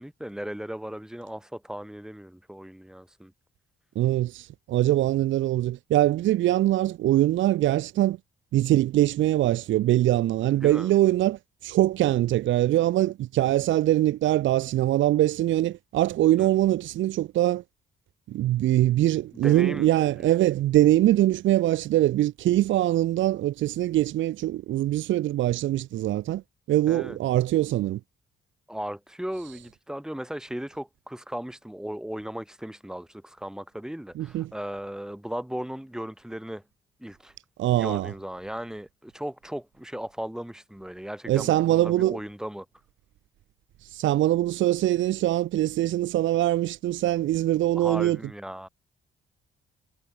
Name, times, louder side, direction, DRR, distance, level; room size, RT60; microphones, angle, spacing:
voice 1, 0.0-3.3 10.5-10.9 16.4-16.5 19.3-20.3 26.9-27.2 28.7-36.6 37.0-37.3 37.7-42.7 47.7-48.7, equal, 5° right, 2.7 m, -36 dB
voice 2, 4.0-8.2 8.5-17.6 18.3-26.4 26.7-28.0 34.2-34.5 37.6-38.1 41.3-42.2 43.8-48.2, right 14 dB, 75° right, 0.7 m, -23 dB
cardioid pair, 90°, 20 cm